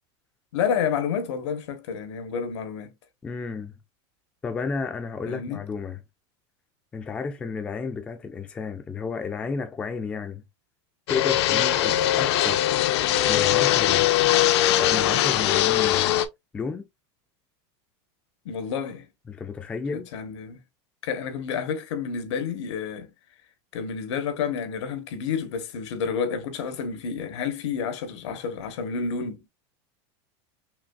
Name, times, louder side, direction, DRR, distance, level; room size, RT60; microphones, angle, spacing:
voice 1, 0.5-2.9 5.3-5.6 11.5-11.7 18.4-19.1 19.9-20.6 21.0-23.1 23.7-29.4, left 6 dB, 85° left, 1.1 m, -30 dB
voice 2, 3.2-3.8 4.4-6.0 6.9-10.4 11.1-14.1 14.8-16.2 16.5-16.8 19.3-20.1, left 5 dB, 10° left, 0.3 m, -32 dB
Fixed-wing aircraft airplane, 11.1-16.3, left 13 dB, 70° left, 0.5 m, -21 dB
5.9 x 2.3 x 2.3 m
supercardioid pair, 175°, 15 cm